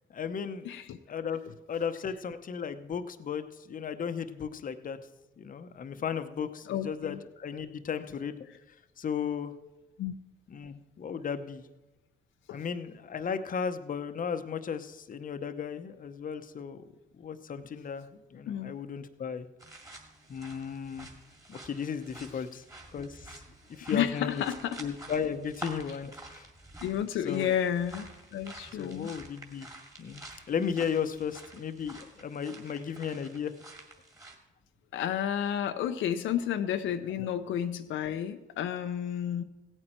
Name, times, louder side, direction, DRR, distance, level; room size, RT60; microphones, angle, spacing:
voice 1, 0.1-0.7 1.1-5.0 5.4-8.4 8.7-9.5 10.5-11.6 12.5-16.9 17.2-19.5 20.3-21.1 21.5-22.6 22.9-23.3 23.7-24.4 24.8-26.5 27.2-27.5 28.8-29.7 30.0-33.5 37.2-37.3, left 7 dB, 45° left, 10 dB, 0.8 m, -35 dB
voice 2, 0.6-1.0 6.7-7.2 10.0-10.1 12.5-12.6 18.5-18.7 23.9-24.8 26.8-29.1 34.9-39.4, left 9 dB, 80° left, 7 dB, 0.7 m, -31 dB
sound 1, 19.6-34.4, right 2 dB, 15° right, 2.3 m, -49 dB
16.0 x 8.9 x 4.4 m, 1.0 s
cardioid pair, 90°, 20 cm